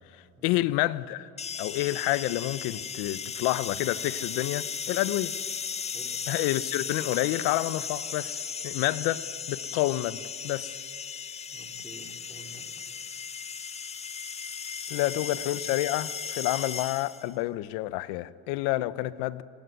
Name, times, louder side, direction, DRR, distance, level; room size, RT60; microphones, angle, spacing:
voice 1, 0.4-1.3 1.6-5.3 6.3-9.2 9.5-10.7 14.9-19.4, left 17 dB, 75° left, 0.9 m, -29 dB
sound 1, 1.4-17.3, left 6 dB, 20° left, 0.5 m, -36 dB
voice 2, 11.5-12.6, equal, 5° right, 4.7 m, -50 dB
25.0 x 20.5 x 9.5 m
cardioid pair, 125°, 36 cm